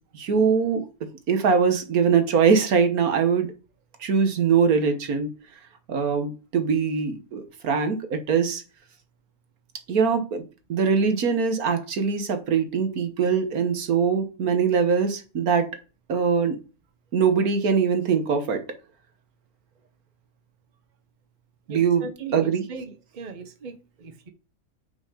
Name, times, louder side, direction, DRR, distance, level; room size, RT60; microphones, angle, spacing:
voice 1, 0.1-3.5 4.0-5.3 5.9-8.6 9.9-10.4 10.7-15.7 16.1-16.6 17.1-18.6 21.7-22.0 22.3-22.6, right 6 dB, 75° right, 1.7 m, -22 dB
voice 2, 21.7-24.3, right 4 dB, 35° right, 1.1 m, -39 dB
6.0 x 5.6 x 5.0 m
omnidirectional pair, 1.5 m